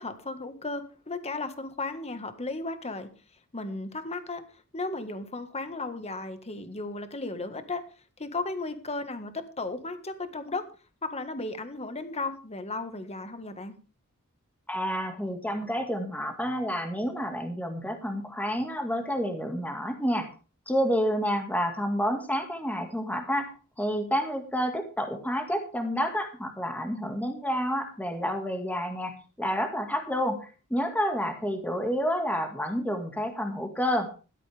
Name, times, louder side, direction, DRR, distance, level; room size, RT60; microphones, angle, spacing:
voice 1, 0.0-3.1 3.5-7.8 8.2-10.6 11.0-13.8, left 3 dB, 30° left, 9 dB, 1.6 m, -35 dB
voice 2, 14.7-20.3 20.7-29.1 29.4-34.1, equal, 5° left, 5 dB, 2.1 m, -29 dB
16.0 x 12.5 x 3.5 m, 0.35 s
head